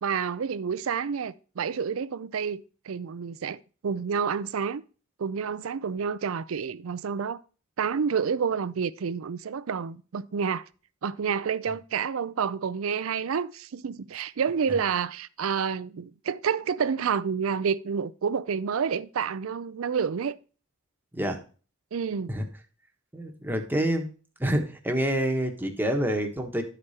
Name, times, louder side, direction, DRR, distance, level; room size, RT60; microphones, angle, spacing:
voice 1, 0.0-4.8 5.2-7.4 7.8-10.6 11.0-20.4 21.9-22.3, right 6 dB, 75° right, 0.5 m, -29 dB
voice 2, 23.1-24.1 24.4-26.6, right 1 dB, 10° right, 1.2 m, -27 dB
11.5 x 5.0 x 4.2 m
head